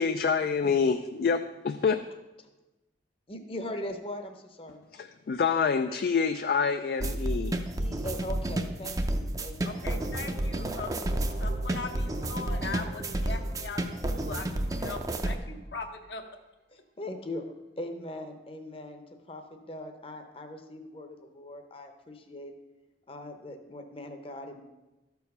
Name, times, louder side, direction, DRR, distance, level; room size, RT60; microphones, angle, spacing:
voice 1, 0.0-2.1 4.9-7.5, left 5 dB, 55° left, 9 dB, 0.3 m, -27 dB
voice 2, 3.3-4.8 7.8-10.2 16.7-17.5 17.8-22.5 23.1-24.6, left 1 dB, 30° left, 6 dB, 0.8 m, -40 dB
sound 1, 7.0-15.3, right 1 dB, 20° right, 0.5 m, -31 dB
voice 3, 9.6-11.0 11.4-16.2, left 4 dB, 70° left, 4 dB, 1.0 m, -40 dB
sound 2, 9.9-15.6, right 1 dB, 70° right, 0.8 m, -47 dB
12.5 x 4.6 x 5.4 m, 1.1 s
head